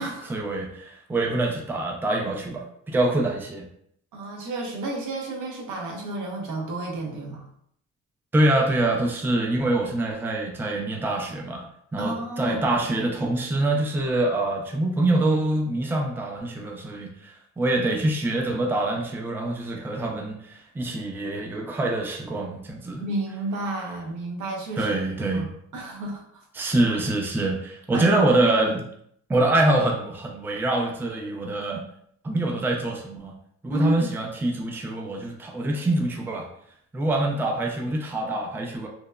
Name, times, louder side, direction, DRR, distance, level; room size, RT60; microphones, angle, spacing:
voice 1, 0.3-3.7 8.3-11.7 11.9-23.0 24.8-25.4 26.5-28.8 29.3-31.8 32.2-33.3 33.6-36.5 36.9-38.9, right 2 dB, 5° right, 1 dB, 0.3 m, -25 dB
voice 2, 4.1-7.5 12.0-12.6 23.0-25.0 25.3-26.7 27.9-28.1 33.7-34.1, right 2 dB, 80° right, 0 dB, 0.7 m, -31 dB
2.8 x 2.0 x 2.2 m, 0.69 s
cardioid pair, 90°, 30 cm